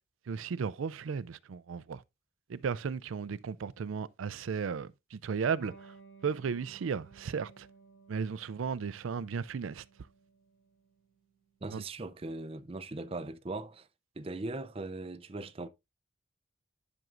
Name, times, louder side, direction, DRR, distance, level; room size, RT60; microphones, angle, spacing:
voice 1, 0.3-2.0 2.5-5.9 6.2-7.7 8.1-9.8 11.7-11.8, right 6 dB, 90° right, 0.4 m, -35 dB
Electric guitar, 5.6-12.7, right 5 dB, 85° left, 4.6 m, -58 dB
voice 2, 11.6-13.9 14.2-15.7, right 2 dB, 30° right, 0.5 m, -39 dB
10.5 x 6.1 x 2.5 m
head